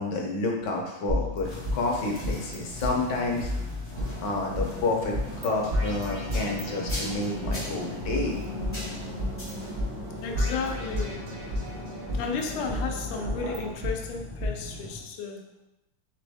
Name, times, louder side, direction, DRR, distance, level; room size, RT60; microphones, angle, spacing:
voice 1, 0.0-3.5 4.2-5.1 5.4-8.4, left 2 dB, 65° left, 0 dB, 1.2 m, -29 dB
sound 1, 1.1-2.6 2.8-2.9 3.4-4.7 5.1-5.5 5.7-7.6 8.0-9.5 9.8-9.9 10.3-11.7 12.1-13.9 14.4-14.5, left 1 dB, 85° right, 0.5 m, -31 dB
sound 2, 1.4-15.0, left 1 dB, 20° left, 0.3 m, -41 dB
sound 3, 3.9-13.7, equal, 70° right, 1.4 m, -40 dB
voice 2, 10.2-11.3 12.2-15.4, left 4 dB, 85° left, 2 dB, 1.5 m, -33 dB
4.1 x 3.4 x 3.4 m, 0.94 s
omnidirectional pair, 2.3 m